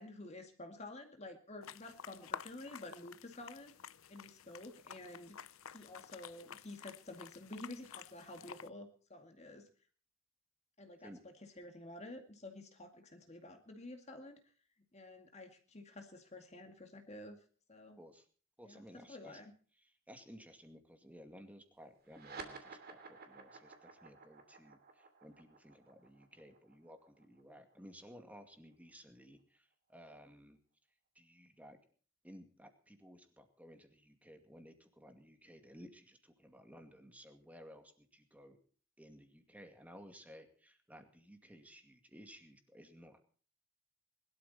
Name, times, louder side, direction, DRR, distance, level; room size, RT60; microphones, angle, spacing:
voice 1, 0.0-3.7 4.1-5.4 5.7-9.7 10.8-14.4 14.9-17.4 17.7-18.0 18.6-19.5, left 2 dB, 35° left, 5 dB, 2.3 m, -50 dB
sound 1, 1.6-8.7, left 7 dB, 85° left, 0.7 m, -51 dB
voice 2, 18.6-19.4 19.8-30.6 31.2-31.8 32.2-38.6 39.0-43.2, equal, 5° right, 6 dB, 2.3 m, -57 dB
sound 2, 22.0-28.9, right 4 dB, 50° right, 2.9 m, -53 dB
21.5 x 12.5 x 4.3 m, 0.43 s
head